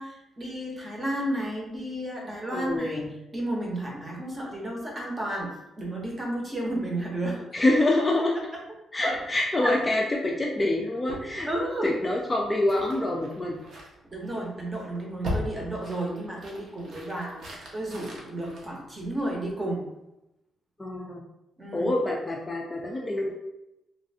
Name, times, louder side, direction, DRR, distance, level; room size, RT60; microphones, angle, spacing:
voice 1, 0.0-7.7 9.0-9.2 9.6-9.7 11.4-11.9 14.1-19.8 21.6-21.9, right 1 dB, 20° right, -2 dB, 0.7 m, -32 dB
voice 2, 2.5-3.1 7.5-8.4 8.9-11.5 11.8-13.6 20.8-21.2 21.7-23.3, left 1 dB, 15° left, -2 dB, 0.3 m, -26 dB
sound 1, 11.1-19.5, left 1 dB, 55° right, 0.7 m, -40 dB
3.1 x 2.5 x 2.7 m, 0.91 s
cardioid pair, 145°, 0 cm